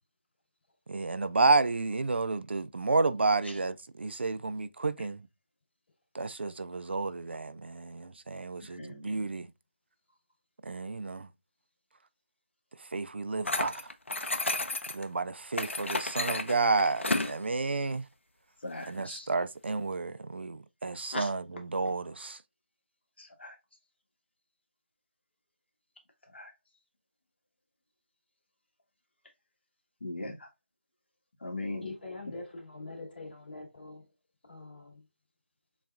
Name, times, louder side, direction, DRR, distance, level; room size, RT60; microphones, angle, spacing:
voice 1, 0.9-5.3 6.1-9.5 10.6-11.3 12.8-13.8 14.9-18.0 18.9-22.4, right 3 dB, 60° right, 0.4 m, -31 dB
voice 2, 8.8-9.1 18.6-19.3 21.1-21.3 23.2-23.5 26.3-26.5 30.0-30.3 31.4-31.9, left 2 dB, 60° left, 1.5 m, -38 dB
sound 1, 13.5-15.0 15.5-17.4, left 2 dB, 80° left, 0.7 m, -32 dB
voice 3, 31.8-34.0 34.5-35.0, left 3 dB, 45° left, 2.5 m, -43 dB
7.0 x 2.4 x 2.4 m
figure-of-eight pair, 165°, 7 cm